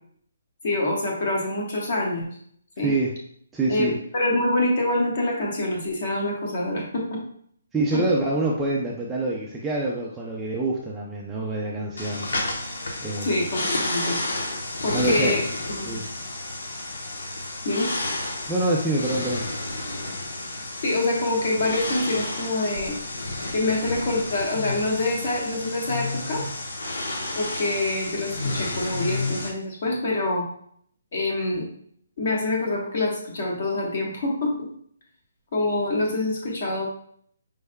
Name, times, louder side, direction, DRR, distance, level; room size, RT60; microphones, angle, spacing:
voice 1, 0.6-2.3 2.8-2.9 3.7-7.2 13.2-14.2 14.8-15.4 15.7-16.0 17.6-17.9 20.8-23.0 23.5-26.4 27.3-30.4 31.1-31.7 32.2-34.7 35.5-36.9, left 2 dB, 40° left, -1 dB, 1.2 m, -25 dB
voice 2, 2.8-3.1 3.5-3.9 7.7-12.3 13.0-13.4 14.9-15.3 15.8-16.1 18.5-19.5, right 2 dB, 5° right, -4 dB, 0.4 m, -26 dB
sound 1, 12.0-29.5, left 2 dB, 80° left, 1.0 m, -31 dB
5.3 x 3.4 x 2.2 m, 0.62 s
hypercardioid pair, 175°, 0 cm